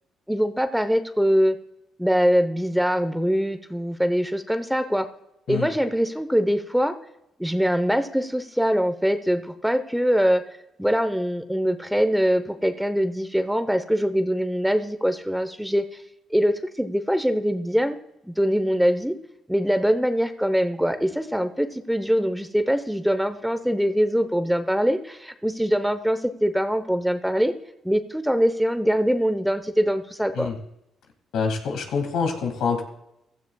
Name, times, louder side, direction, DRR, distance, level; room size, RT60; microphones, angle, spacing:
voice 1, 0.3-1.6 2.0-5.1 5.5-7.0 7.4-10.4 10.8-15.8 16.3-18.0 18.2-19.1 19.5-27.5 27.8-30.5, equal, ahead, 10 dB, 0.8 m, -23 dB
voice 2, 31.3-32.8, left 5 dB, 80° left, 4 dB, 2.1 m, -26 dB
15.5 x 13.5 x 2.3 m, 0.85 s
cardioid pair, 90°, 0 cm